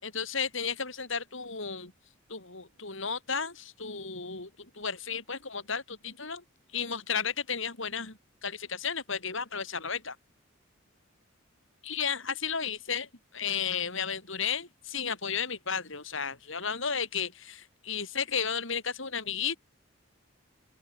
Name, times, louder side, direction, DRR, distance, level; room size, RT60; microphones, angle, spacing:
voice 1, 0.0-1.9 2.3-6.4 6.7-10.2 11.8-19.6, left 6 dB, 65° left, 4.1 m, -33 dB
open air
head